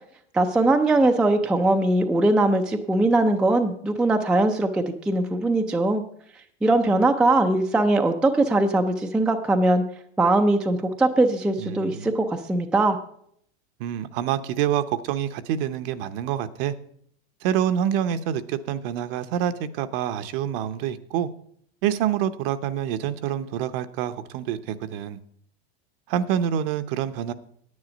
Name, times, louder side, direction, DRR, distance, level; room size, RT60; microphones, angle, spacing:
voice 1, 0.3-6.0 6.6-9.8 10.2-13.0, right 2 dB, 5° right, 0.4 m, -21 dB
voice 2, 11.6-12.1 13.8-16.7 17.4-21.3 21.8-25.2 26.1-27.3, right 10 dB, 55° right, 0.8 m, -27 dB
9.7 x 9.5 x 5.1 m
supercardioid pair, 140°, 35 cm